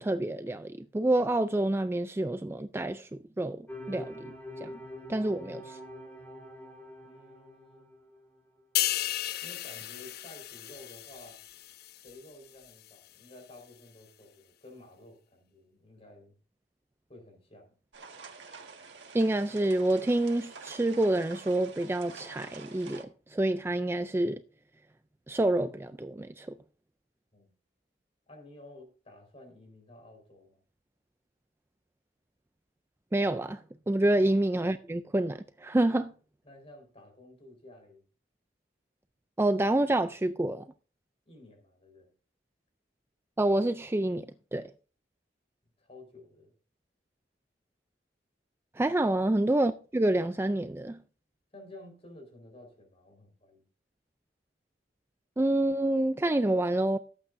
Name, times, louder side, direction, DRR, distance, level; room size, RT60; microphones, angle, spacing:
voice 1, 0.0-3.1 3.4-4.3 4.6-4.7 5.1-5.8 19.1-24.4 25.3-26.5 33.1-36.1 39.4-40.6 43.4-44.3 44.5-44.7 48.8-51.0 55.4-57.0, right 1 dB, 15° right, 0.4 m, -28 dB
sound 1, 3.7-8.3, left 1 dB, 10° left, 2.1 m, -44 dB
voice 2, 7.0-7.9 9.4-11.4 12.0-16.4 17.1-17.7 27.3-27.5 28.3-30.6 34.1-34.2 36.4-38.0 41.2-42.1 45.8-46.5 49.1-49.3 51.5-53.7, left 1 dB, 35° left, 4.5 m, -52 dB
sound 2, 8.8-12.3 12.7-12.9, left 14 dB, 60° left, 0.4 m, -34 dB
sound 3, 17.9-23.0, right 4 dB, 85° right, 1.6 m, -48 dB
17.0 x 8.6 x 2.6 m
head